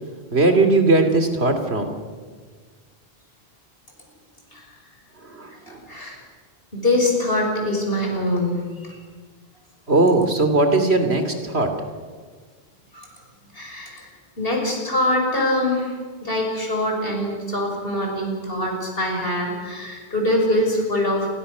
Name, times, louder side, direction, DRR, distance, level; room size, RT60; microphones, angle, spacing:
voice 1, 0.3-1.9 5.1-5.9 9.9-11.7, right 2 dB, 85° right, 6 dB, 3.2 m, -19 dB
voice 2, 5.5-6.2 6.7-9.0 12.9-13.1 13.5-14.1 14.4-21.3, left 1 dB, 65° left, 1 dB, 6.4 m, -24 dB
29.0 x 23.5 x 6.8 m, 1.5 s
omnidirectional pair, 1.1 m